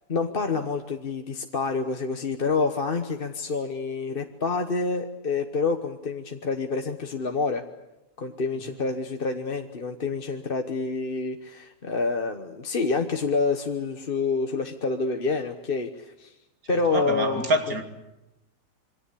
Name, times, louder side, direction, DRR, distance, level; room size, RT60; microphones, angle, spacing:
voice 1, 0.1-7.6 8.2-16.3 16.7-17.5, left 4 dB, 35° left, 5 dB, 1.3 m, -27 dB
voice 2, 16.7-17.8, right 1 dB, 60° right, 6 dB, 2.9 m, -26 dB
27.0 x 24.0 x 8.5 m, 0.91 s
omnidirectional pair, 1.8 m